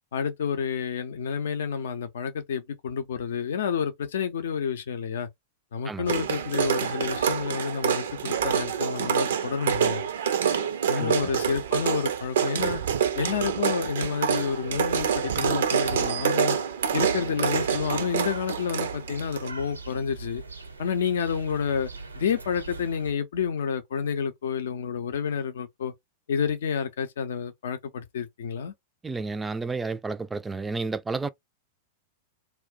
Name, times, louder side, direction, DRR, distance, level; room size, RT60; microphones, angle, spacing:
voice 1, 0.1-5.3 5.7-10.0 10.9-12.8 13.2-16.6 16.9-20.4 20.8-21.9 22.2-25.9 26.3-28.7, left 7 dB, 65° left, 0.6 m, -29 dB
sound 1, 6.1-19.5, right 8 dB, 65° right, 0.5 m, -27 dB
voice 2, 11.0-11.3 29.0-31.3, right 3 dB, 10° right, 0.4 m, -31 dB
sound 2, 17.0-23.1, right 4 dB, 90° right, 0.8 m, -41 dB
2.3 x 2.1 x 3.7 m
figure-of-eight pair, 95°, 0 cm